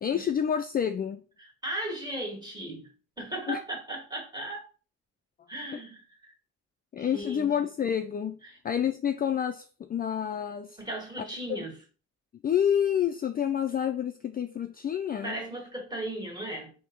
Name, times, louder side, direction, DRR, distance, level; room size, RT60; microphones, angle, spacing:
voice 1, 0.0-1.2 3.5-3.6 5.7-5.8 6.9-8.4 8.6-10.8 11.2-11.6 12.4-15.4, left 9 dB, 30° left, 0.4 m, -28 dB
voice 2, 1.4-2.9 3.2-4.7 5.5-6.3 6.9-7.6 8.4-8.6 10.8-11.8 15.2-16.7, right 1 dB, 15° right, 1.8 m, -37 dB
3.4 x 2.8 x 4.4 m
cardioid pair, 90°, 30 cm